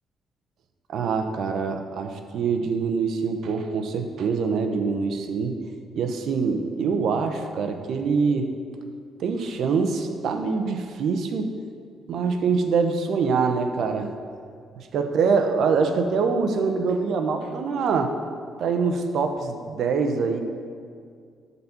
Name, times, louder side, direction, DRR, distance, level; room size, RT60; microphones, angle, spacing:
voice 1, 0.9-5.6 6.0-8.5 9.2-11.6 12.1-14.1 14.8-18.1 18.6-20.4, right 5 dB, 70° right, 6 dB, 0.9 m, -24 dB
11.5 x 4.1 x 7.0 m, 2.2 s
cardioid pair, 90°, 0 cm